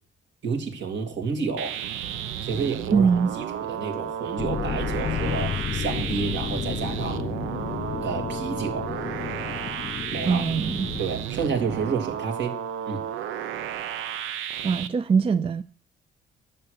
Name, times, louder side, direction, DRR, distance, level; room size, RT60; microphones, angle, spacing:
voice 1, 0.4-1.8 2.4-3.1 3.4-7.3 8.0-8.9 10.1-10.4 11.0-12.6 12.9-13.0, right 5 dB, 65° right, 2.5 m, -30 dB
sound 1, 1.6-14.9, right 9 dB, 85° right, 0.8 m, -33 dB
voice 2, 2.9-3.3 10.3-10.9 14.6-15.6, right 5 dB, 30° right, 0.4 m, -22 dB
sound 2, 4.4-11.0, left 8 dB, 35° left, 0.5 m, -32 dB
9.6 x 6.8 x 6.5 m
cardioid pair, 90°, 20 cm